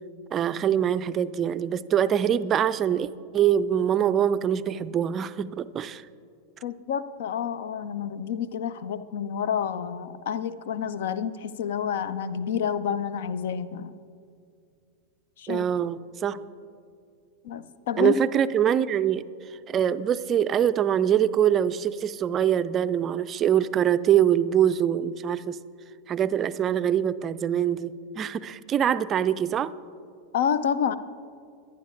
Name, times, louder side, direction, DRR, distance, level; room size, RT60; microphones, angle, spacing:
voice 1, 0.3-6.0 15.5-16.4 18.0-19.3 19.7-25.6 26.1-29.7, right 9 dB, 25° right, 14 dB, 0.4 m, -24 dB
voice 2, 6.6-14.0 15.4-15.7 17.4-18.1 30.3-30.9, left 8 dB, 55° left, 16 dB, 0.5 m, -29 dB
24.0 x 11.0 x 2.6 m, 2.4 s
figure-of-eight pair, 90°, 0 cm